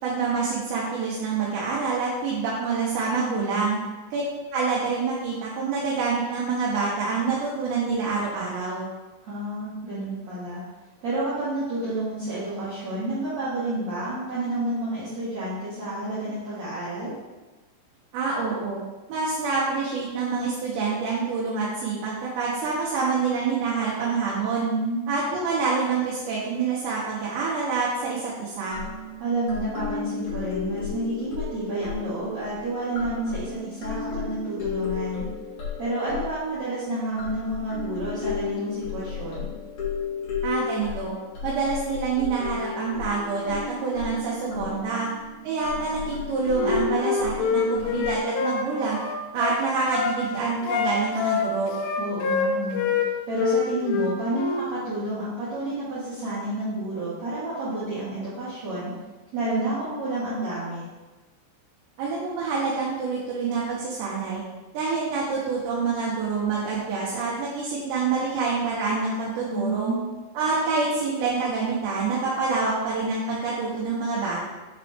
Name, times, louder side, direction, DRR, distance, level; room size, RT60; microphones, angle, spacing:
voice 1, 0.0-3.8 4.1-4.2 4.5-8.9 18.1-18.8 19.1-24.7 25.1-28.8 40.4-41.1 41.4-45.1 45.4-49.0 49.3-51.7 62.0-64.4 64.7-70.0 70.3-74.4, right 4 dB, 80° right, -6 dB, 3.2 m, -26 dB
voice 2, 3.2-3.8 9.3-10.6 11.0-17.1 24.6-25.1 29.2-35.2 35.8-39.5 44.5-45.0 52.0-52.9 53.3-58.9 59.3-60.8 69.5-70.1, right 1 dB, 65° right, -11 dB, 1.7 m, -30 dB
sound 1, 28.7-36.8 37.2-48.2, left 6 dB, 55° left, 2.5 m, -34 dB
Wind instrument woodwind instrument, 46.5-50.2 50.6-53.1 53.3-54.7, left 5 dB, 80° left, 2.7 m, -26 dB
7.3 x 4.0 x 3.4 m, 1.2 s
omnidirectional pair, 5.1 m